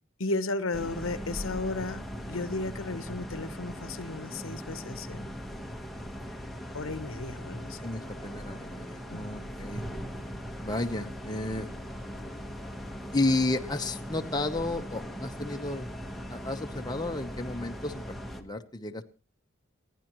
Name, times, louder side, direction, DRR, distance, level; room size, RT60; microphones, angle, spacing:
voice 1, 0.2-5.3 6.7-7.8 9.1-9.2, left 2 dB, 90° left, 1.0 m, -34 dB
sound 1, 0.7-18.4, equal, ahead, 1.2 m, -40 dB
voice 2, 7.8-9.8 10.6-11.7 13.1-15.9 16.3-18.0 18.4-19.0, left 2 dB, 20° left, 0.9 m, -32 dB
29.0 x 10.0 x 3.1 m
head